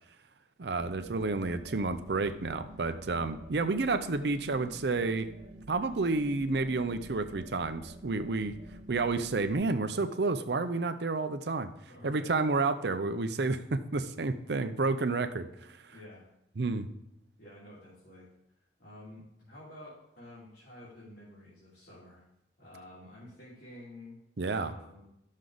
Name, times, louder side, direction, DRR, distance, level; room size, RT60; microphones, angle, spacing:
voice 1, 0.6-5.3 5.7-8.5 8.9-11.7 12.0-15.5 16.6-16.9 24.4-24.7, right 3 dB, 75° right, 9 dB, 0.6 m, -30 dB
sound 1, 0.8-9.5, right 1 dB, 50° right, 1.1 m, -49 dB
voice 2, 11.9-12.3 15.9-16.3 17.4-18.3 18.8-22.2 22.6-24.2 24.5-25.1, left 1 dB, 75° left, -9 dB, 2.8 m, -50 dB
12.5 x 6.3 x 3.9 m, 0.79 s
head